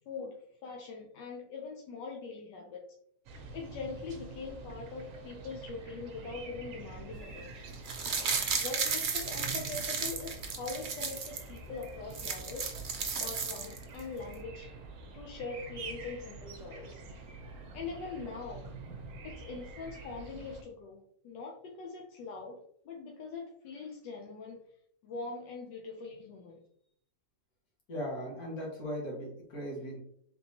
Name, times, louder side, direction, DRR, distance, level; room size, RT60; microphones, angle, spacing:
voice 1, 0.1-2.9 3.5-7.7 8.6-12.7 13.2-14.8 15.1-17.0 17.7-18.7 19.2-24.6 25.0-26.6, left 4 dB, 85° left, 0 dB, 1.3 m, -42 dB
sound 1, 3.3-20.6, right 4 dB, 60° right, 0.9 m, -47 dB
sound 2, 7.7-11.4 11.8-11.9 12.1-14.0 14.3-14.4, right 5 dB, 85° right, 0.4 m, -34 dB
voice 2, 27.9-30.0, equal, 60° left, -2 dB, 2.0 m, -38 dB
4.2 x 3.5 x 2.8 m, 0.67 s
omnidirectional pair, 1.9 m